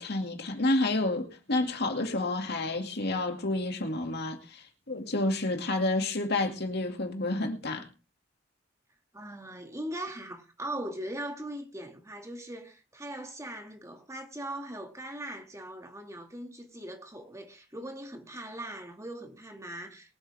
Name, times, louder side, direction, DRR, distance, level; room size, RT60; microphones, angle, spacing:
voice 1, 0.0-7.9, left 2 dB, 60° left, 2.4 m, -30 dB
voice 2, 9.1-20.1, right 1 dB, 15° right, 2.3 m, -40 dB
23.0 x 8.6 x 3.5 m
head